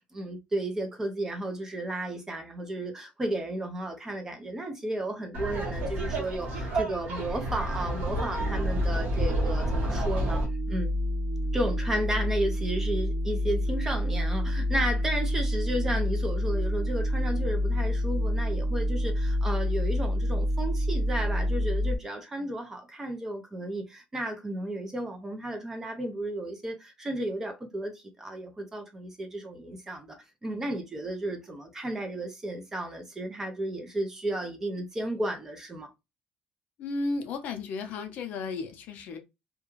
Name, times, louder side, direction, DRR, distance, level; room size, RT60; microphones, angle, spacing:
voice 1, 0.1-10.4 10.7-10.9 11.5-35.9, right 1 dB, 15° right, 0.4 m, -33 dB
Laughter, 5.3-10.4, right 1 dB, 60° right, 1.1 m, -31 dB
sound 1, 8.4-22.0, left 1 dB, 80° right, 0.7 m, -28 dB
voice 2, 36.8-39.2, left 3 dB, 55° left, 0.5 m, -34 dB
2.3 x 2.2 x 3.0 m
cardioid pair, 180°, 3 cm